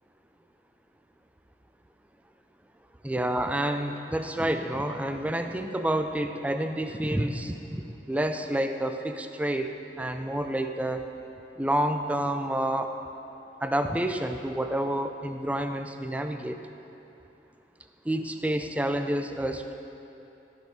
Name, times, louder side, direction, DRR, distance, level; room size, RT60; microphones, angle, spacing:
voice 1, 3.0-11.1 11.6-12.9 13.6-16.6 18.1-19.7, right 1 dB, 10° right, 7 dB, 0.4 m, -29 dB
13.0 x 6.2 x 5.2 m, 2.9 s
head